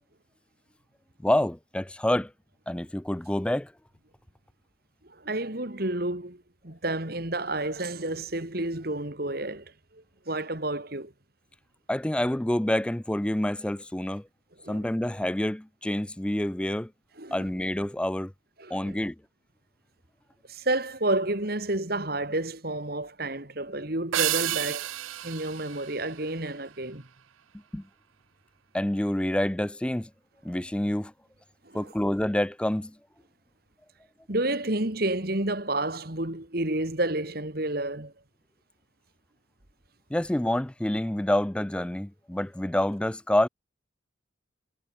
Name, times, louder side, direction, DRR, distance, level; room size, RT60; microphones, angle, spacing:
voice 1, 1.2-2.3 2.7-3.7 11.9-14.3 14.7-16.9 17.3-18.3 18.7-19.2 27.7-27.8 28.7-30.1 30.4-31.1 31.7-32.9 40.1-43.5, left 1 dB, 5° left, 0.3 m, -27 dB
voice 2, 5.1-11.1 14.6-14.9 17.2-17.4 18.6-19.0 20.5-24.9 25.2-27.1 31.6-31.9 34.3-38.1, right 2 dB, 50° right, 2.6 m, -30 dB
sound 1, 24.1-26.8, right 14 dB, 85° right, 0.5 m, -31 dB
head